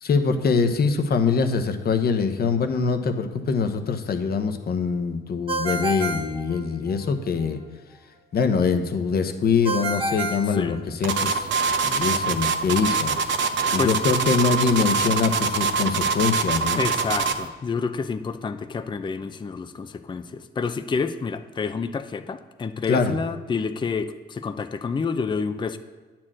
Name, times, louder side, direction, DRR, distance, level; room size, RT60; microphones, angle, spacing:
voice 1, 0.0-7.6 8.3-11.5 11.8-16.8 22.9-23.1, left 5 dB, 50° left, 7 dB, 1.0 m, -23 dB
Ringtone, 5.5-7.1 9.6-11.3, right 2 dB, 25° right, 1.1 m, -29 dB
sound 1, 11.0-17.5, right 5 dB, 70° right, 0.8 m, -24 dB
voice 2, 16.8-25.8, left 5 dB, 25° left, 9 dB, 0.5 m, -28 dB
9.5 x 4.4 x 7.5 m, 1.3 s
cardioid pair, 90°, 20 cm